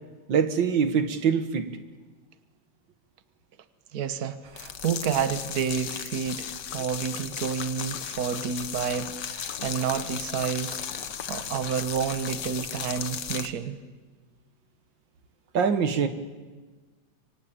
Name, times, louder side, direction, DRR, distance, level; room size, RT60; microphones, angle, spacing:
voice 1, 0.3-1.7 15.5-16.1, right 6 dB, 50° right, 9 dB, 1.7 m, -23 dB
voice 2, 3.9-10.8 11.3-13.8, right 7 dB, 85° right, 11 dB, 0.8 m, -30 dB
sound 1, 4.5-13.5, left 8 dB, 70° left, 1.0 m, -35 dB
26.5 x 24.5 x 9.0 m, 1.3 s
omnidirectional pair, 3.5 m